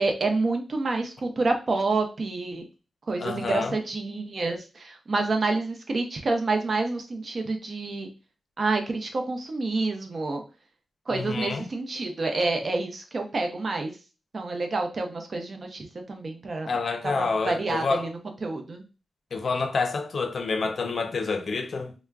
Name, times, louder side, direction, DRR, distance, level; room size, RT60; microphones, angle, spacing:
voice 1, 0.0-2.6 3.1-8.1 8.6-10.4 11.1-14.0 14.3-16.7 17.0-18.8, right 3 dB, 55° right, 0.6 m, -28 dB
voice 2, 3.2-3.7 11.1-11.7 16.7-18.1 19.3-21.9, left 4 dB, 65° left, 0.5 m, -28 dB
2.2 x 2.1 x 3.4 m
cardioid pair, 70°, 0 cm